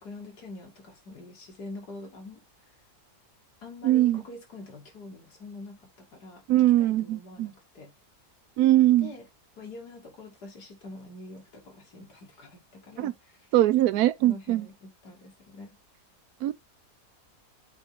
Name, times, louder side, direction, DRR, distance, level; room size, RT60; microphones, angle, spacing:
voice 1, 0.0-2.4 3.6-6.4 6.8-7.9 9.0-9.3 9.6-13.5 14.2-15.8, left 2 dB, 80° left, 2.6 m, -45 dB
voice 2, 3.8-4.2 6.5-7.5 8.6-9.1 13.0-13.1 13.5-14.7 16.4-16.5, right 14 dB, 75° right, 1.0 m, -22 dB
7.8 x 3.2 x 3.9 m
omnidirectional pair, 1.7 m